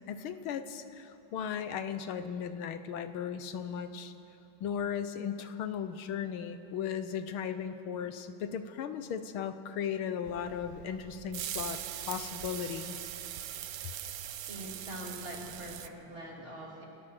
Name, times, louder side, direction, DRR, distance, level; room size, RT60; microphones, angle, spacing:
voice 1, 0.1-4.1 4.6-11.8 12.1-13.0, left 8 dB, 75° left, 10 dB, 1.7 m, -36 dB
sound 1, 10.2-15.9, right 11 dB, 80° right, 0.8 m, -41 dB
voice 2, 14.5-16.9, equal, 25° right, -2 dB, 3.0 m, -43 dB
29.5 x 13.5 x 6.5 m, 2.9 s
omnidirectional pair, 2.4 m